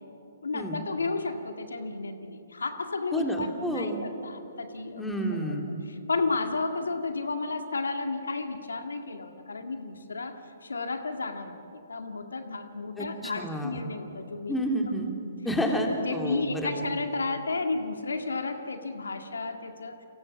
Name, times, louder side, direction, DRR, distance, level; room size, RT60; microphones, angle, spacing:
voice 1, 0.4-5.2 5.9-14.6 14.9-15.0 16.0-20.0, left 3 dB, 80° left, 6 dB, 1.9 m, -32 dB
voice 2, 3.1-4.0 5.0-5.7 13.0-13.8 14.5-15.1 15.4-16.9, equal, 5° left, 1 dB, 3.3 m, -30 dB
29.5 x 24.0 x 7.3 m, 2.9 s
figure-of-eight pair, 130°, 0 cm